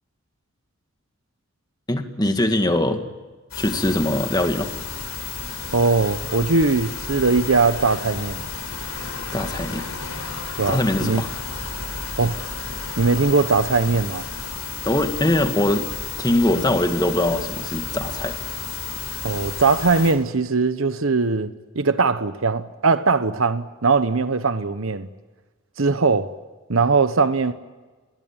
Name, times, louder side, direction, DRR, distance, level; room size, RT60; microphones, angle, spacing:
voice 1, 1.9-3.0 3.6-4.7 9.3-9.9 10.7-11.3 14.9-15.9 16.2-18.4, left 1 dB, 20° left, 1.9 m, -22 dB
sound 1, 3.5-20.1, left 5 dB, 90° left, 5.9 m, -32 dB
voice 2, 5.7-8.4 10.6-11.2 12.2-12.4 13.0-14.3 19.2-25.1 25.8-26.3 26.7-27.5, right 4 dB, 70° right, 1.0 m, -20 dB
28.5 x 21.5 x 8.9 m
head